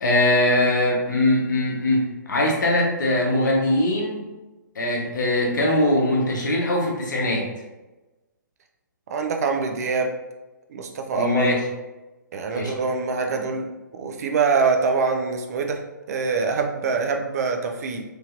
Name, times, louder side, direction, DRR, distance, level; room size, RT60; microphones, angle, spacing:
voice 1, 0.0-4.3 4.8-7.5 11.2-11.6 12.5-12.7, left 1 dB, 70° left, -1 dB, 0.8 m, -21 dB
voice 2, 9.1-10.1 10.7-11.4 12.3-13.7 13.9-15.8 16.1-18.0, right 4 dB, 55° right, 4 dB, 0.4 m, -24 dB
3.0 x 2.7 x 2.4 m, 1.1 s
figure-of-eight pair, 125°, 10 cm